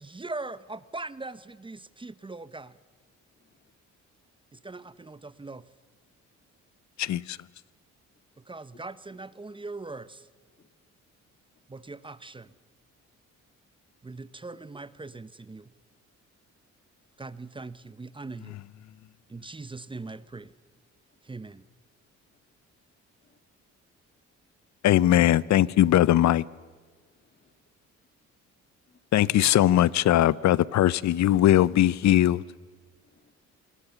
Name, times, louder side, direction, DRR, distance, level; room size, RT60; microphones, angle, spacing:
voice 1, 0.0-2.7 4.5-5.6 8.5-10.3 11.7-12.5 14.0-15.7 17.2-18.6 19.3-20.5 21.2-21.6, right 3 dB, 15° right, 0.8 m, -40 dB
voice 2, 3.4-3.7 4.5-4.9 8.7-8.8 10.6-10.7 23.2-23.4 27.0-27.5 28.9-29.0 33.0-33.3, left 4 dB, 35° left, 2.1 m, -63 dB
voice 3, 7.0-7.4 24.8-26.4 29.1-32.4, left 13 dB, 65° left, 0.7 m, -20 dB
26.5 x 20.0 x 7.0 m
cardioid pair, 90°, 30 cm